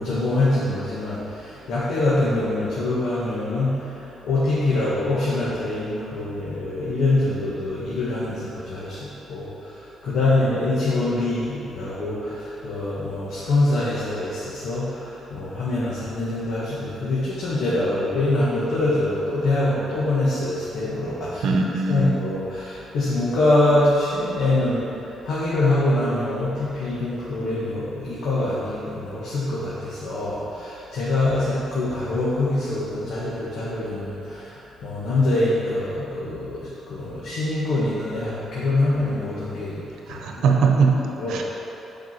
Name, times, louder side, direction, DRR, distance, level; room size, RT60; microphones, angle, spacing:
voice 1, 0.0-21.5 21.9-39.8 40.1-40.4 41.2-41.4, left 2 dB, 75° left, -9 dB, 1.7 m, -24 dB
voice 2, 21.4-22.2 40.1-41.0 41.3-41.4, right 4 dB, 75° right, 2 dB, 1.0 m, -20 dB
8.0 x 5.1 x 6.0 m, 3.0 s
cardioid pair, 90°, 0 cm